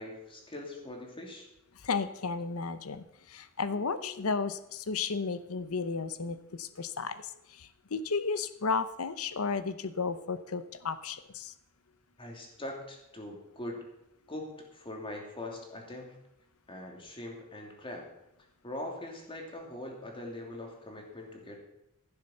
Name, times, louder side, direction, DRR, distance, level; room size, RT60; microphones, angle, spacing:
voice 1, 0.0-1.5 12.2-13.8 14.3-16.2 16.7-18.1 18.6-21.6, left 1 dB, 25° left, 1 dB, 2.8 m, -42 dB
voice 2, 1.7-11.5, left 4 dB, 70° left, 13 dB, 0.8 m, -33 dB
15.0 x 7.3 x 6.5 m, 0.85 s
head